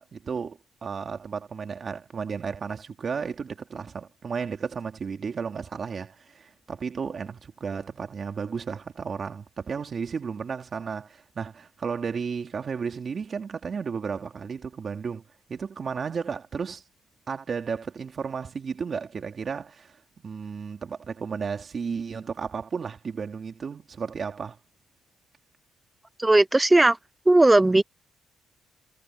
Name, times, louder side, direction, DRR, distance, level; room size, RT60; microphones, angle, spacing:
voice 1, 0.0-15.2 15.5-16.8 17.3-20.0 20.2-24.6, right 6 dB, 45° right, 2.7 m, -33 dB
voice 2, 26.2-27.0 27.3-27.8, right 2 dB, 15° right, 0.4 m, -17 dB
cardioid pair, 90°, 0 cm